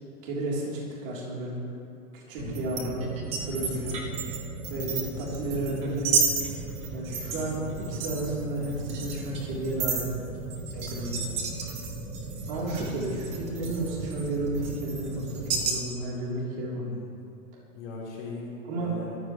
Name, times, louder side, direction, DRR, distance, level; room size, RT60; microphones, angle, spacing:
voice 1, 0.2-1.6 2.1-3.1 3.4-4.0 4.7-6.5 6.9-10.0 10.7-11.4 12.5-16.8 18.7-18.9, right 1 dB, 35° right, -4 dB, 3.3 m, -32 dB
sound 1, 2.4-15.7, right 4 dB, 15° right, 0.8 m, -32 dB
voice 2, 16.7-17.2 17.7-19.2, left 3 dB, 50° left, -5 dB, 4.1 m, -40 dB
21.0 x 14.0 x 3.1 m, 2.5 s
hypercardioid pair, 160°, 44 cm